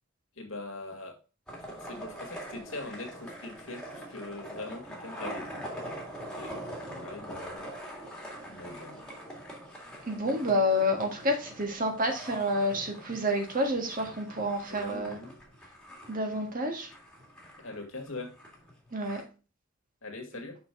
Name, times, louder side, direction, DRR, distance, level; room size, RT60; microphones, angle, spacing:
voice 1, 0.4-1.1 1.8-5.7 6.2-6.5 6.8-7.6 8.5-9.1 14.7-15.3 17.6-18.3 20.0-20.6, left 2 dB, 80° left, 3 dB, 1.9 m, -42 dB
sound 1, 1.5-19.2, equal, 5° left, 1.9 m, -43 dB
voice 2, 10.0-15.2 16.1-16.9 18.9-19.2, left 1 dB, 45° right, 3 dB, 1.7 m, -29 dB
6.1 x 5.8 x 3.7 m, 0.34 s
head